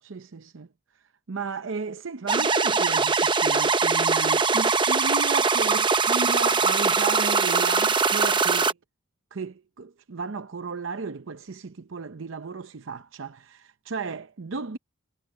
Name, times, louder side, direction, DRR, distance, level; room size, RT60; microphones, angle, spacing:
voice 1, 0.0-0.7 1.3-8.8 9.3-14.8, right 4 dB, 65° right, 0.6 m, -34 dB
sound 1, 2.3-8.7, right 4 dB, 25° right, 0.8 m, -22 dB
head